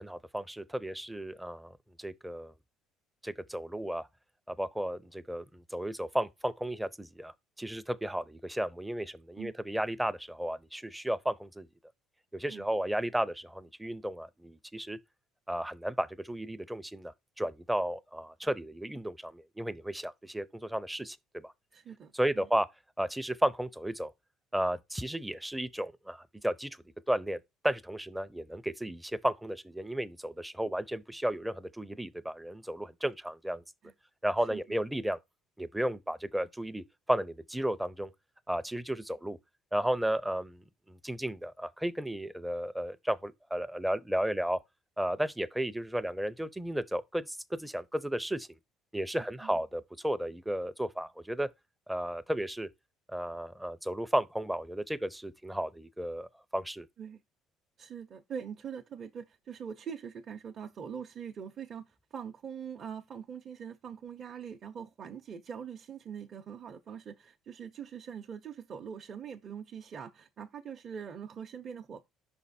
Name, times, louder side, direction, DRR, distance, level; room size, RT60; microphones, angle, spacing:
voice 1, 0.0-1.7 2.0-2.5 3.2-4.1 4.5-11.7 12.3-15.0 15.5-21.5 22.1-22.7 23.0-24.1 24.5-26.8 27.1-27.4 27.6-33.6 34.2-35.2 35.6-38.1 38.5-39.4 39.7-44.6 45.0-48.5 48.9-51.5 51.9-52.7 53.1-56.9, right 1 dB, 5° right, 0.5 m, -33 dB
voice 2, 21.7-22.5 33.8-33.9 34.5-34.8 49.4-49.6 57.0-57.2 57.8-72.0, right 7 dB, 40° right, 0.7 m, -43 dB
5.6 x 4.2 x 4.2 m
cardioid pair, 115°, 0 cm